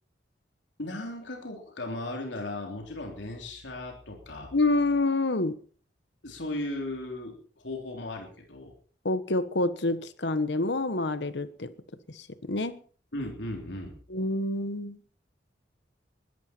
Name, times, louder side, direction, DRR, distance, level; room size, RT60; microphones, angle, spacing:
voice 1, 0.8-4.5 6.2-8.7 13.1-13.9, left 1 dB, 85° left, 3.6 m, -36 dB
voice 2, 4.5-5.6 9.0-11.7 12.1-12.8 14.1-15.0, left 2 dB, 70° left, 1.3 m, -27 dB
20.5 x 14.0 x 4.5 m
head